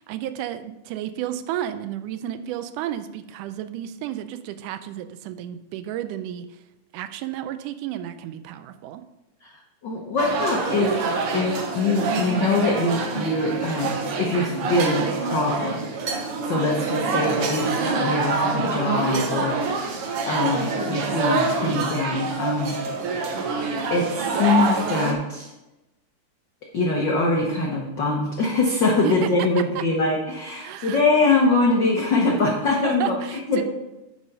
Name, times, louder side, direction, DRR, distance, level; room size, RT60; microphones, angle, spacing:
voice 1, 0.0-6.5 6.9-9.0 29.0-29.3 29.8-29.9 30.6-31.0 32.7-33.6, right 12 dB, 85° right, 10 dB, 2.1 m, -32 dB
voice 2, 9.8-11.0 11.3-22.8 23.9-25.5 26.7-33.6, left 3 dB, 85° left, -1 dB, 1.0 m, -23 dB
sound 1, 10.2-25.1, right 4 dB, 65° right, 1.4 m, -26 dB
9.4 x 4.8 x 5.4 m, 1.0 s
omnidirectional pair, 3.6 m